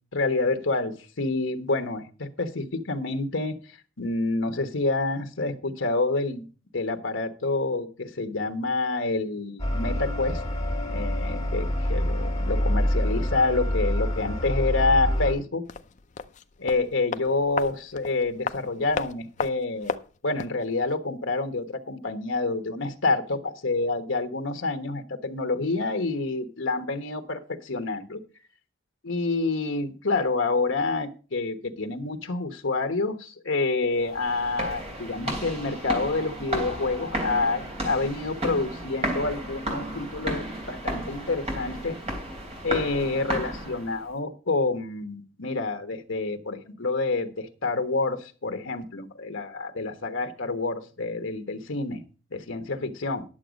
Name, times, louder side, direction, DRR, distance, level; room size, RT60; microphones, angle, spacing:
voice 1, 0.1-3.6 4.0-6.4 6.7-10.4 10.9-15.6 16.6-19.9 20.2-28.2 29.0-42.0 42.6-52.0 52.3-53.2, left 3 dB, 70° left, 1.3 m, -28 dB
sound 1, 9.6-15.3, equal, 15° left, 2.9 m, -26 dB
sound 2, 15.6-20.6 20.9-21.0, left 5 dB, 35° left, 0.5 m, -35 dB
sound 3, 34.0-44.0, right 1 dB, 30° right, 3.2 m, -33 dB
11.0 x 7.2 x 5.2 m
head